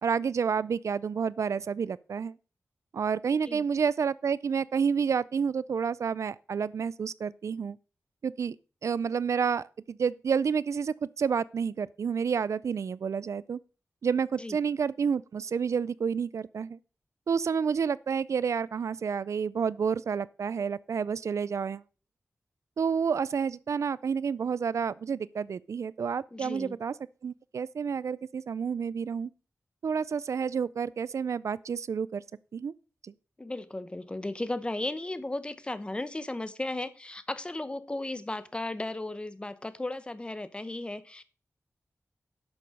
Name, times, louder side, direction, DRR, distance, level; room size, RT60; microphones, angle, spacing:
voice 1, 0.0-2.3 2.9-7.8 8.2-8.6 8.8-13.6 14.0-16.8 17.3-21.8 22.8-26.9 27.2-29.3 29.8-32.2 32.5-32.7 33.0-33.1, right 6 dB, 75° right, 0.4 m, -29 dB
voice 2, 26.3-26.8 33.4-41.2, left 2 dB, 20° left, 0.9 m, -35 dB
11.0 x 6.9 x 5.3 m
wide cardioid pair, 130°, 5 cm